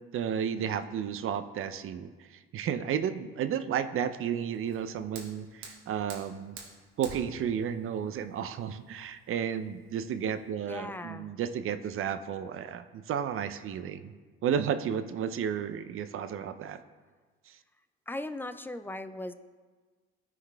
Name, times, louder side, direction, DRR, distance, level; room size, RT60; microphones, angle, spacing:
voice 1, 0.1-6.6 7.0-14.1 14.4-16.8 17.5-17.6, right 8 dB, 45° right, 11 dB, 0.5 m, -32 dB
Fire, 4.5-10.5, right 4 dB, 75° right, 1.3 m, -49 dB
voice 2, 10.7-11.3 18.1-19.3, left 1 dB, 5° left, 11 dB, 0.3 m, -38 dB
13.0 x 4.6 x 2.3 m, 1.4 s
hypercardioid pair, 60°, 31 cm